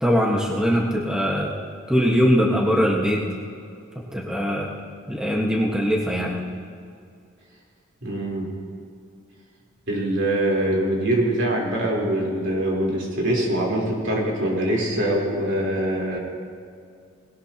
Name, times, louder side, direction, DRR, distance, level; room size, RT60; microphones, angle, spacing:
voice 1, 0.0-1.5 1.9-3.2 4.1-4.7 5.1-6.3, equal, 5° right, -3 dB, 1.4 m, -21 dB
voice 2, 8.0-8.5 9.9-16.2, right 1 dB, 60° right, -3 dB, 3.8 m, -23 dB
21.0 x 18.0 x 2.9 m, 2.4 s
head